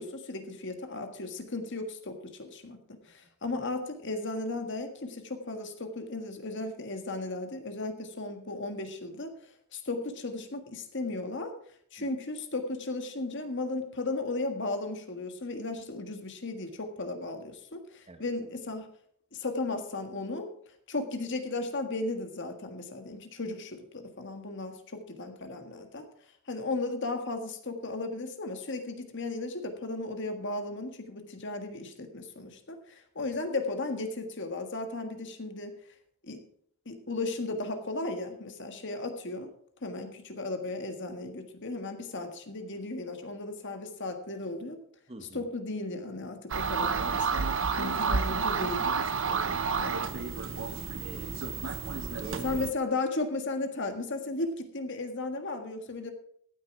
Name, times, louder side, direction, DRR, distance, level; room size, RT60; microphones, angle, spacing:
voice 1, 0.0-9.3 9.7-11.5 11.9-18.9 19.3-20.5 20.9-26.1 26.5-35.8 36.2-36.4 36.9-39.5 39.8-44.8 45.3-47.5 47.8-48.9 49.8-50.1 52.4-56.1, left 2 dB, 55° left, 6 dB, 1.7 m, -35 dB
voice 2, 45.1-45.5 49.3-50.0 50.9-51.5 52.1-52.6, right 1 dB, 25° right, 7 dB, 1.4 m, -45 dB
sound 1, 46.5-52.7, right 5 dB, 55° right, 0.8 m, -30 dB
15.0 x 9.3 x 4.7 m, 0.66 s
head